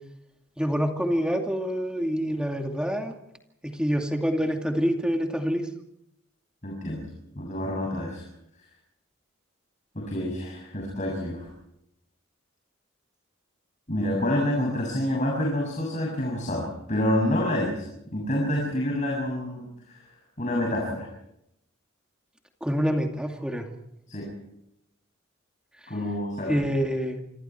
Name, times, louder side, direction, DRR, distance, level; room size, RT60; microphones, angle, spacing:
voice 1, 0.6-3.1 3.6-5.7 22.6-23.6 26.5-27.2, equal, 5° right, 4 dB, 2.5 m, -26 dB
voice 2, 6.6-7.1 7.4-8.2 10.0-11.5 13.9-17.8 18.1-20.0 20.4-21.1 24.1-24.3 25.9-26.6, left 1 dB, 35° left, -2 dB, 7.1 m, -28 dB
27.5 x 25.5 x 4.6 m, 0.80 s
head